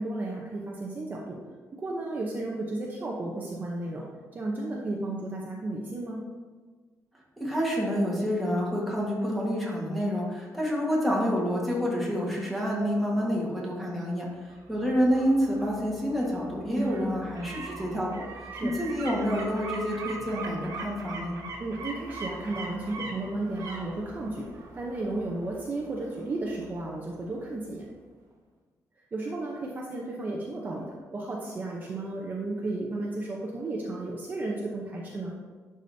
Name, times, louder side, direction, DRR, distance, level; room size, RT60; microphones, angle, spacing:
voice 1, 0.0-1.4 1.7-4.0 4.3-6.3 16.7-17.1 18.5-18.7 21.6-27.9 29.1-35.3, right 2 dB, 30° right, -3 dB, 0.7 m, -33 dB
voice 2, 7.4-14.3 14.7-21.4, equal, ahead, -4 dB, 1.5 m, -28 dB
sound 1, 14.5-27.3 27.7-27.8, right 3 dB, 70° right, 1.4 m, -42 dB
11.0 x 4.9 x 2.7 m, 1.4 s
wide cardioid pair, 160°, 6 cm